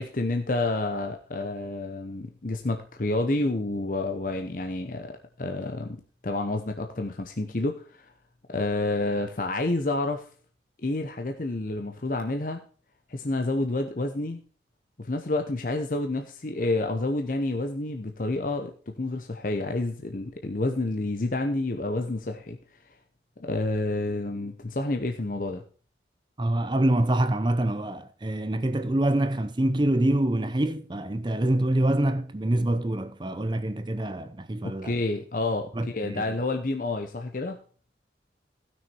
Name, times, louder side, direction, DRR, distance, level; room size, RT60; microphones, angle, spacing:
voice 1, 0.0-8.1 8.5-10.3 10.8-12.6 13.1-14.4 15.0-22.6 23.4-25.6 34.6-37.6, left 2 dB, 45° left, 0.8 m, -29 dB
voice 2, 26.4-34.9 35.7-36.3, right 1 dB, 25° right, 0.6 m, -25 dB
15.5 x 6.4 x 4.4 m
head